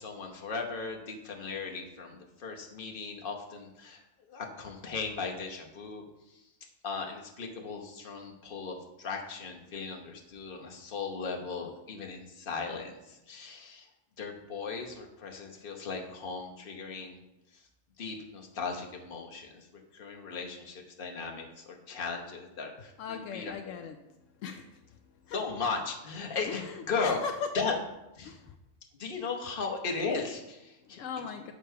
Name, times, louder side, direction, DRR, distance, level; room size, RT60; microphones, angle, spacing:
voice 1, 0.0-4.0 4.3-6.4 6.8-13.9 14.2-17.2 17.5-17.6 18.0-23.7 25.3-27.2 27.5-27.7 28.1-28.4 28.9-31.0, left 4 dB, 45° left, 1 dB, 1.2 m, -37 dB
voice 2, 23.0-24.0 24.4-24.8 25.3-25.4 26.5-27.5 28.2-28.5 30.9-31.5, left 6 dB, 80° left, 6 dB, 0.9 m, -39 dB
6.7 x 5.3 x 4.6 m, 0.92 s
omnidirectional pair, 1.3 m